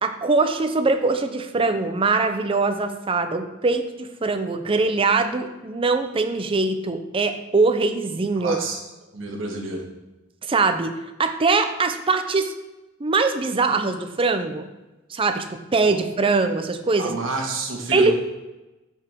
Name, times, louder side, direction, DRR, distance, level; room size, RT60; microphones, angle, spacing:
voice 1, 0.0-8.6 10.5-10.9 11.2-12.5 13.0-14.7 15.1-15.5 15.7-17.1 17.9-18.1, right 3 dB, 25° right, 7 dB, 0.5 m, -22 dB
voice 2, 8.4-8.8 9.1-9.9 15.8-16.0 17.0-18.1, right 2 dB, 70° right, 0 dB, 1.5 m, -29 dB
8.1 x 4.7 x 3.6 m, 1.1 s
head